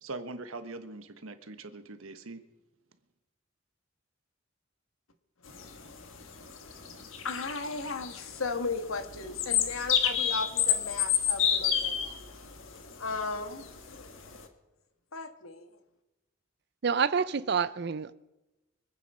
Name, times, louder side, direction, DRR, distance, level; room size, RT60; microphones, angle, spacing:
voice 1, 0.0-2.4, right 3 dB, 85° right, 1.2 m, -42 dB
sound 1, 5.5-14.5, left 8 dB, 70° left, 1.5 m, -30 dB
voice 2, 7.2-12.2 13.0-13.6 15.1-15.8, left 4 dB, 90° left, 1.5 m, -36 dB
voice 3, 16.8-18.2, right 6 dB, 55° right, 0.5 m, -28 dB
24.5 x 9.2 x 5.5 m
head